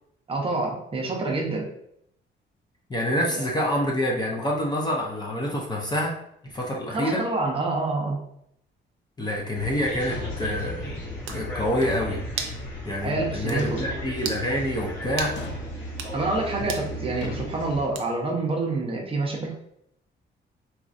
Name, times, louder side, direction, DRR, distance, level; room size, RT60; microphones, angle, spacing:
voice 1, 0.3-1.7 3.3-3.5 6.9-8.2 13.0-13.9 16.1-19.5, right 3 dB, 30° right, 0 dB, 0.7 m, -27 dB
voice 2, 2.9-6.2 6.5-7.2 9.2-11.0 11.3-12.2 12.8-15.4 16.6-16.7, equal, 20° left, -2 dB, 0.5 m, -27 dB
sound 1, 9.5-17.9, equal, 85° left, 1.3 m, -35 dB
Thump thud, 10.1-10.7 11.8-12.4 13.6-14.1 15.4-15.8 17.2-17.5, left 3 dB, 70° left, 0.4 m, -37 dB
sound 2, 10.8-10.9 11.3-11.5 12.4-12.6 13.0-13.1 13.5-13.6 14.2-14.5 15.2-15.4 15.9-16.2 16.7-16.9 17.9-18.3, right 6 dB, 85° right, 0.5 m, -34 dB
4.1 x 2.5 x 2.4 m, 0.73 s
cardioid pair, 145°, 20 cm